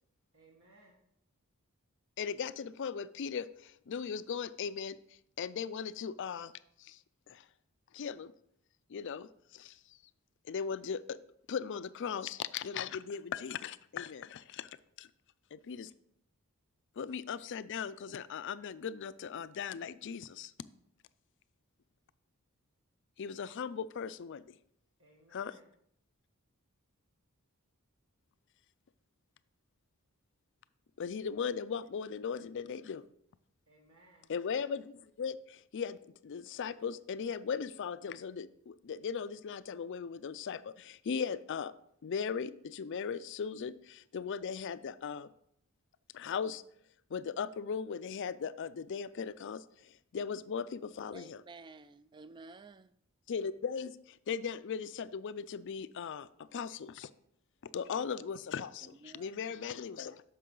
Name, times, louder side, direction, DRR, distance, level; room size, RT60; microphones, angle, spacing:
voice 1, 0.3-1.0 25.0-25.7 33.7-34.3, right 2 dB, 60° right, 1.4 m, -62 dB
voice 2, 2.2-5.0 5.4-6.5 6.8-7.0 7.3-7.5 7.9-8.3 8.9-10.0 10.4-11.2 11.5-15.1 15.5-15.9 17.0-20.5 23.2-24.5 25.3-25.5 31.0-33.1 34.3-41.7 42.0-45.3 46.1-46.6 47.1-51.4 53.3-57.1 57.7-60.2, left 6 dB, 55° left, 0.4 m, -38 dB
voice 3, 51.1-53.0 58.8-59.6, right 3 dB, 20° right, 0.3 m, -53 dB
10.0 x 6.6 x 3.8 m
head